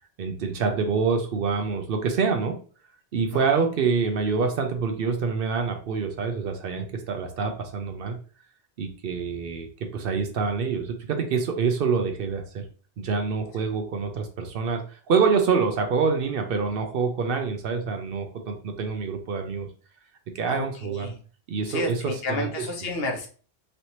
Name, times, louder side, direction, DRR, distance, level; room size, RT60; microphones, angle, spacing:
voice 1, 0.2-2.6 3.1-8.2 8.8-9.7 9.9-12.6 13.0-19.7 20.3-21.1 21.5-22.5 22.8-23.0, right 5 dB, 65° right, 5 dB, 0.7 m, -26 dB
voice 2, 20.5-21.2 21.7-23.3, left 2 dB, 65° left, 3 dB, 0.9 m, -31 dB
3.2 x 2.8 x 2.9 m, 0.40 s
omnidirectional pair, 1.1 m